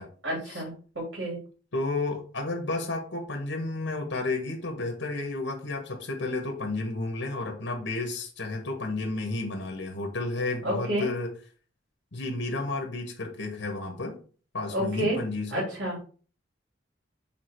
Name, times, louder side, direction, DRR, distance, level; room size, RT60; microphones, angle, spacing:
voice 1, 0.2-1.4 10.6-11.1 14.7-15.2 15.5-16.1, right 1 dB, 85° right, -3 dB, 3.5 m, -30 dB
voice 2, 1.7-11.3 12.1-14.2 14.5-15.7, left 2 dB, 85° left, 1 dB, 1.5 m, -32 dB
7.4 x 3.6 x 4.6 m, 0.40 s
head